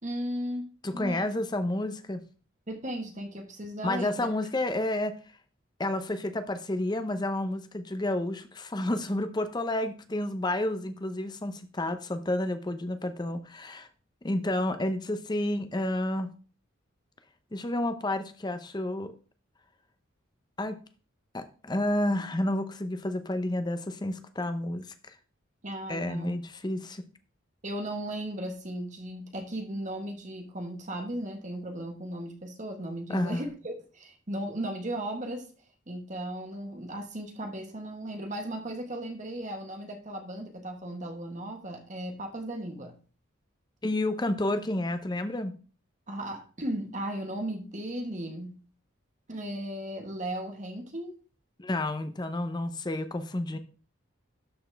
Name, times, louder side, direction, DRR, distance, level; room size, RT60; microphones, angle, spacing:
voice 1, 0.0-1.3 2.7-4.3 25.6-26.4 27.6-35.5 35.9-42.9 46.1-48.5 49.3-51.2, right 1 dB, 35° right, 4 dB, 1.4 m, -36 dB
voice 2, 0.8-2.2 3.8-5.1 5.8-13.9 14.2-16.3 17.5-19.1 20.6-20.8 21.3-25.2 25.9-27.0 33.1-33.5 43.8-45.5 51.6-53.6, left 1 dB, 20° left, 10 dB, 0.6 m, -30 dB
12.0 x 4.1 x 3.4 m, 0.38 s
head